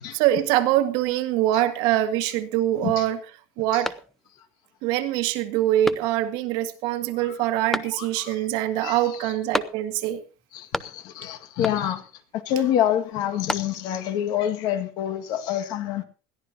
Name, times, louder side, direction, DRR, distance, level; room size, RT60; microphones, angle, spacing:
voice 1, 0.1-3.2 3.6-3.9 4.8-10.2, right 13 dB, 65° right, 1.8 m, -24 dB
sound 1, 3.8-4.5 4.9-5.0 5.8-6.5 7.7-8.3 9.5-10.1 10.4-11.2 11.6-12.1 13.1-14.1, left 1 dB, 5° left, 0.6 m, -33 dB
voice 2, 7.8-8.4 8.8-9.3 10.5-12.1 12.5-16.0, left 10 dB, 55° left, 2.0 m, -27 dB
21.0 x 14.0 x 2.9 m
cardioid pair, 145°, 8 cm